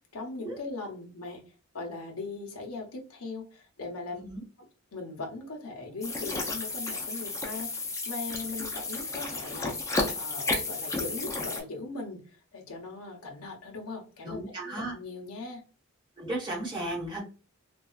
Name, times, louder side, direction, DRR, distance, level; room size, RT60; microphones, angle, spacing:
voice 1, 0.1-1.4 1.7-4.2 4.9-7.7 8.1-15.6, left 3 dB, 75° left, 0.8 m, -39 dB
sound 1, 6.0-11.6, left 3 dB, 15° left, 0.5 m, -32 dB
voice 2, 14.2-14.9 16.2-17.2, right 1 dB, 20° right, 1.1 m, -35 dB
3.3 x 2.3 x 2.3 m
head